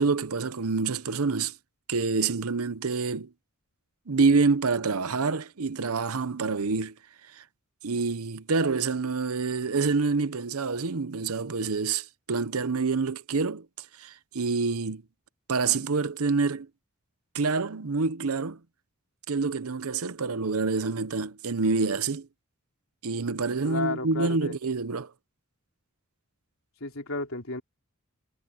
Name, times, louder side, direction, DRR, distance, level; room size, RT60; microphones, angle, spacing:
voice 1, 0.0-1.5 1.9-3.3 4.1-6.9 7.3-7.4 7.8-15.0 15.5-16.7 17.3-18.6 19.3-22.3 23.0-25.1, right 4 dB, 80° right, 0.8 m, -27 dB
voice 2, 23.6-24.5 26.8-27.6, left 3 dB, 65° left, 3.9 m, -32 dB
head